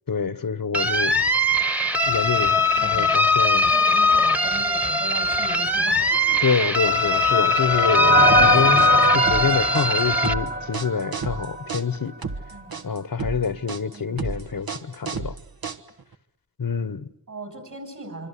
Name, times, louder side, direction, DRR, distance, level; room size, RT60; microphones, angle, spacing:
voice 1, 0.1-1.2 2.1-3.7 6.4-8.9 9.1-12.1 12.8-15.4 16.6-17.1, left 6 dB, 70° left, 1.1 m, -26 dB
sound 1, 0.7-10.3, left 2 dB, 5° right, 1.1 m, -21 dB
voice 2, 2.8-3.2 3.5-6.5 7.2-7.4 12.5-12.8 13.9-14.3 17.3-18.3, right 2 dB, 55° right, 8.0 m, -39 dB
sound 2, 6.4-11.8, right 1 dB, 30° right, 1.1 m, -23 dB
sound 3, 8.3-16.1, right 4 dB, 80° right, 1.3 m, -32 dB
26.0 x 25.0 x 8.4 m
wide cardioid pair, 50°, 35 cm